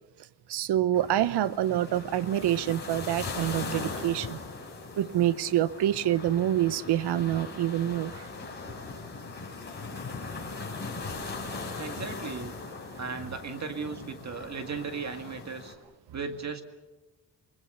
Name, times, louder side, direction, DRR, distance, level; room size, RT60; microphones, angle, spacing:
voice 1, 0.5-4.4 5.0-8.1, right 12 dB, 80° right, 17 dB, 0.8 m, -26 dB
sound 1, 0.9-15.7, left 3 dB, 25° left, 6.1 m, -39 dB
voice 2, 11.8-12.5 12.9-15.8 16.1-16.6, right 5 dB, 45° right, 7 dB, 2.0 m, -36 dB
28.5 x 21.0 x 6.8 m, 1.1 s
wide cardioid pair, 135°, 40 cm